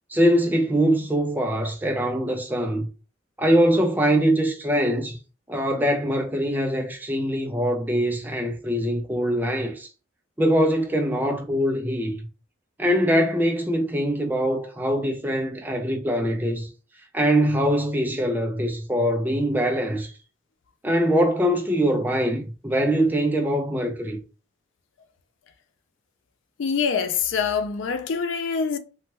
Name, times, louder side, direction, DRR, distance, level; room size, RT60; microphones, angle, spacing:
voice 1, 0.1-2.9 3.4-5.2 5.5-9.9 10.4-12.1 12.8-16.7 17.1-20.1 20.8-24.2, equal, 10° right, 0.4 m, -23 dB
voice 2, 26.6-28.8, left 6 dB, 70° left, 0.4 m, -25 dB
3.1 x 2.2 x 2.9 m
head